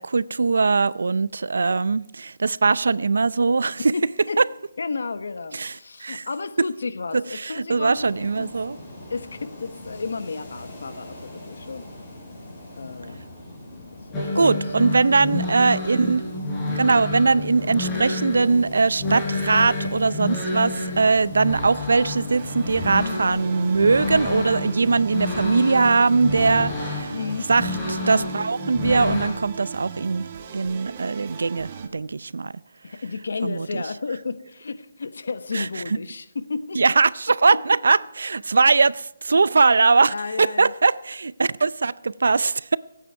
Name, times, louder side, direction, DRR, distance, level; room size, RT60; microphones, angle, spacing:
voice 1, 0.0-3.9 4.4-4.5 5.5-5.7 6.0-6.2 7.1-8.8 14.4-16.3 16.8-27.1 27.5-30.3 30.5-32.5 33.4-33.8 35.5-36.0 36.8-42.8, right 4 dB, 80° right, 0.5 m, -21 dB
voice 2, 3.9-4.5 4.8-8.5 9.1-11.9 12.7-13.2 13.9-14.6 27.1-27.5 32.8-37.0 37.5-38.0 40.1-40.7, left 4 dB, 75° left, 1.0 m, -32 dB
sound 1, 7.9-25.7, left 1 dB, 30° left, 6.6 m, -42 dB
sound 2, 14.1-29.3, left 2 dB, 15° left, 4.4 m, -29 dB
sound 3, 22.3-31.9, right 7 dB, 30° right, 1.4 m, -38 dB
26.5 x 9.0 x 4.6 m
hypercardioid pair, 165°, 0 cm